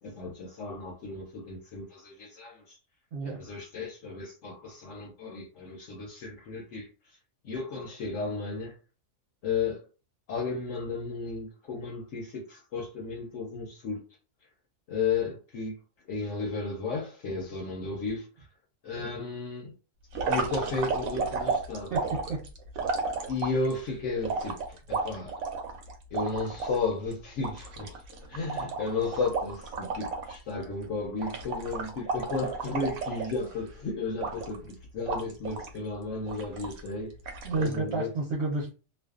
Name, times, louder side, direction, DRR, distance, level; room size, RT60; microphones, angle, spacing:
voice 1, 0.0-2.8 3.2-6.9 7.4-8.8 9.4-9.9 10.3-14.0 14.9-15.8 16.1-18.3 18.8-19.7 20.2-21.9 23.3-25.4 26.1-28.0 28.3-37.1 37.6-38.1, left 4 dB, 70° left, 1.0 m, -34 dB
voice 2, 3.1-3.4 21.9-22.5 37.4-38.7, right 3 dB, 60° right, 0.9 m, -31 dB
sound 1, 20.1-23.7 24.2-26.8 27.1-27.2 27.4-30.4 30.6-30.8 31.2-33.7 34.2-34.7 35.1-35.8 36.3-36.9 37.3-37.8, right 4 dB, 85° right, 1.1 m, -33 dB
2.5 x 2.3 x 2.3 m
omnidirectional pair, 1.4 m